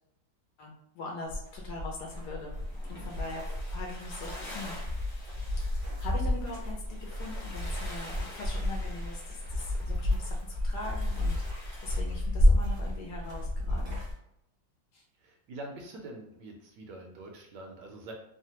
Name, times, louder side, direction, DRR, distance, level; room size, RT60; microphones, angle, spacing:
voice 1, 0.6-2.5 2.9-4.8 5.6-14.0 14.9-15.0, left 2 dB, 70° left, -1 dB, 1.1 m, -42 dB
sound 1, 1.3-14.1, left 1 dB, 60° right, 0.6 m, -31 dB
sound 2, 2.5-12.0, left 1 dB, 50° left, 1.3 m, -48 dB
voice 2, 15.2-18.1, right 2 dB, 75° right, 0 dB, 1.2 m, -45 dB
3.2 x 2.1 x 2.8 m, 0.80 s
omnidirectional pair, 2.1 m